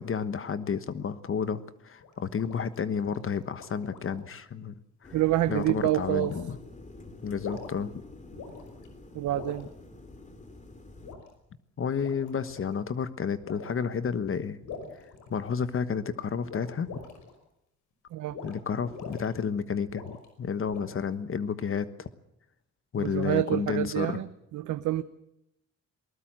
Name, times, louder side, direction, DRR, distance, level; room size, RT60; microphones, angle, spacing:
voice 1, 0.0-4.7 5.0-5.1 5.5-6.6 7.2-8.0 11.8-14.6 15.3-16.9 18.4-22.1 22.9-24.2, left 6 dB, 45° left, 13 dB, 1.3 m, -31 dB
sound 1, 2.0-4.3 5.5-5.8 6.2-6.4 7.2-7.9 8.3-8.9 9.3-9.6 11.0-11.3 11.9-12.7 13.4-13.8 14.6-15.8 16.4-17.3 18.3-18.5 18.8-19.3 19.9-20.3 20.7-21.1, left 5 dB, 75° left, 5.5 m, -43 dB
sound 2, 5.0-11.1, left 2 dB, 25° left, 3.1 m, -48 dB
voice 2, 5.1-6.3 9.1-9.7 18.1-18.4 22.9-25.0, right 14 dB, 75° right, 12 dB, 0.8 m, -27 dB
21.0 x 19.5 x 7.6 m, 0.82 s
cardioid pair, 90°, 30 cm